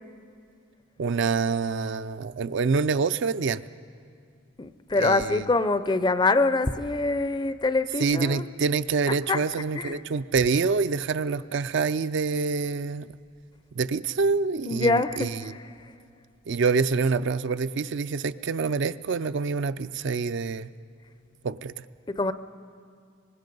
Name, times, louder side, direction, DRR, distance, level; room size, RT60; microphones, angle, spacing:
voice 1, 1.0-3.6 4.9-5.4 8.0-13.2 13.8-15.5 16.5-20.7 21.4-21.9, right 4 dB, 55° right, 0.4 m, -26 dB
voice 2, 4.6-8.4 9.3-9.4 9.7-10.0 14.7-15.5 22.1-22.3, left 3 dB, 20° left, 0.5 m, -24 dB
24.0 x 20.5 x 5.3 m
head